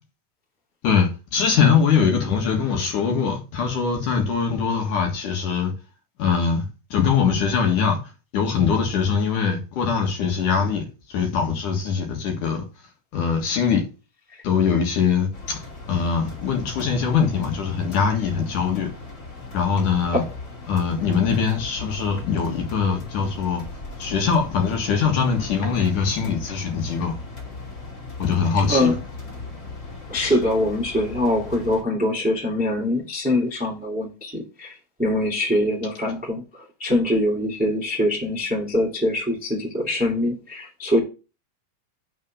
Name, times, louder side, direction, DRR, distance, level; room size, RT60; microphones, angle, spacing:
voice 1, 0.8-5.7 6.2-6.6 6.9-8.0 8.3-10.8 11.1-12.6 13.1-13.8 14.4-15.6 15.9-18.9 19.5-20.2 20.7-23.6 24.0-27.1 28.2-28.9, left 6 dB, 60° left, 2.8 m, -22 dB
sound 1, 15.3-31.8, left 3 dB, 30° left, 2.9 m, -38 dB
voice 2, 30.1-34.7 35.0-36.4 36.8-41.0, left 1 dB, 5° right, 1.2 m, -23 dB
6.4 x 5.5 x 6.5 m
omnidirectional pair, 4.6 m